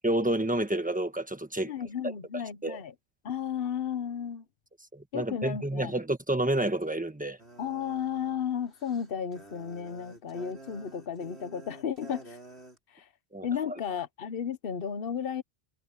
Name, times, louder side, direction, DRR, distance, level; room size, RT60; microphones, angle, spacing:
voice 1, 0.0-1.7 2.6-2.8 4.9-7.4 13.3-13.5, right 1 dB, 10° right, 1.3 m, -29 dB
voice 2, 1.6-2.9 3.2-4.4 5.1-6.0 7.6-12.4 12.9-13.1 13.4-15.4, left 8 dB, 60° left, 1.1 m, -33 dB
sound 1, 7.4-12.8, right 2 dB, 80° right, 6.8 m, -50 dB
omnidirectional pair, 1.1 m